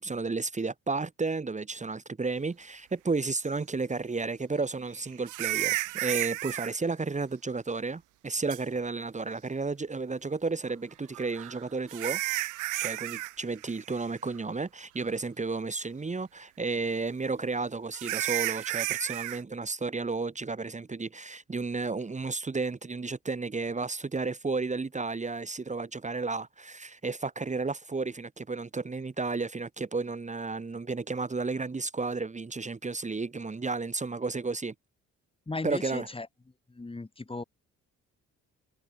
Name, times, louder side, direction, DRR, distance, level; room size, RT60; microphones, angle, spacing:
voice 1, 0.0-12.2 12.8-34.7 35.6-36.1, right 3 dB, 25° right, 2.1 m, -32 dB
sound 1, 3.4-3.5 5.3-6.7 8.5-8.6 11.1-13.3 13.6-13.9 14.3-14.4 15.0-15.1 17.9-19.4, right 18 dB, 90° right, 0.7 m, -32 dB
voice 2, 35.5-36.3 36.7-37.4, left 3 dB, 20° left, 2.5 m, -36 dB
cardioid pair, 90°, 30 cm